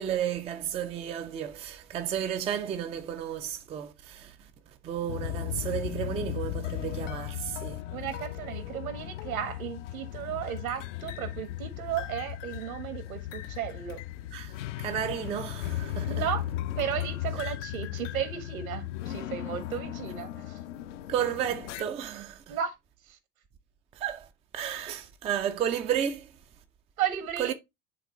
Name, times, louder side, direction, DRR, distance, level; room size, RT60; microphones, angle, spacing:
voice 1, 0.0-4.3 4.8-7.8 14.3-14.5 14.8-16.2 17.4-17.5 21.1-22.6 24.0-24.3 24.5-26.3 27.4-27.5, right 9 dB, 15° right, 0.5 m, -32 dB
sound 1, 5.1-21.8, left 14 dB, 55° left, 0.6 m, -36 dB
voice 2, 7.9-14.1 16.1-16.4 16.8-20.6 22.5-22.7 23.1-23.2 27.0-27.5, right 9 dB, 65° right, 1.5 m, -34 dB
10.0 x 3.7 x 2.9 m
figure-of-eight pair, 80°, 46 cm